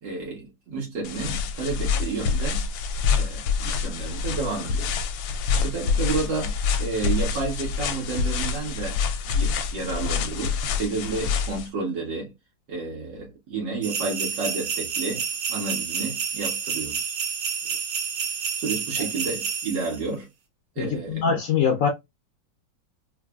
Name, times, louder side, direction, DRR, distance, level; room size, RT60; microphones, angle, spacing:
voice 1, 0.0-2.6 3.1-4.9 5.5-12.3 12.7-17.1 18.6-20.3 20.8-21.3, right 4 dB, 70° right, 2.3 m, -31 dB
sound 1, 1.0-11.7, left 5 dB, 85° left, 1.3 m, -26 dB
sound 2, 13.8-20.0, right 7 dB, 85° right, 1.4 m, -29 dB
voice 2, 20.8-21.9, left 6 dB, 60° left, 0.8 m, -23 dB
4.6 x 2.3 x 2.3 m
omnidirectional pair, 2.0 m